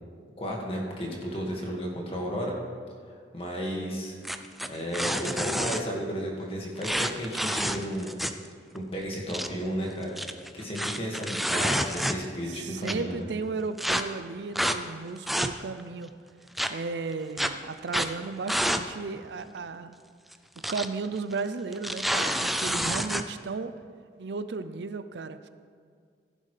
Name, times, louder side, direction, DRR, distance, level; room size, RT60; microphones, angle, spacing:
voice 1, 0.4-2.5 3.3-4.2 4.7-8.1 8.7-10.1 10.5-13.2, equal, 30° left, -2 dB, 1.9 m, -33 dB
sound 1, 4.2-5.8 6.8-8.5 8.8-8.9 9.1-9.5 10.0-12.4 12.8-12.9 13.8-14.0 14.6-14.8 15.2-15.8 16.6-16.7 17.4-17.5 17.9-18.1 18.5-18.8 19.1-19.2 20.3-20.9 21.2-21.3 21.7-23.2, equal, ahead, 0.3 m, -28 dB
voice 2, 12.5-16.1 16.7-20.0 20.6-23.7 24.2-25.5, right 4 dB, 80° right, 12 dB, 0.5 m, -35 dB
15.5 x 11.0 x 3.3 m, 2.1 s
head